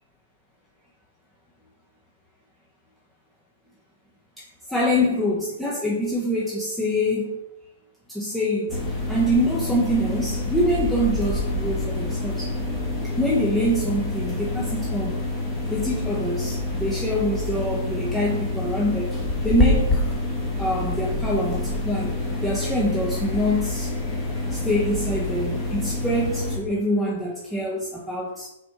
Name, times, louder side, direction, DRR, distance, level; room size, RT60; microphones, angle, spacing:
voice 1, 4.4-7.4 8.1-8.8 9.1-12.5 13.2-15.2 15.7-19.1 19.4-20.2 20.6-22.1 22.4-23.9 24.5-28.5, equal, 5° left, -5 dB, 0.7 m, -25 dB
sound 1, 8.7-26.6, left 2 dB, 20° left, 1.1 m, -27 dB
4.1 x 2.6 x 4.7 m, 0.91 s
hypercardioid pair, 115°, 0 cm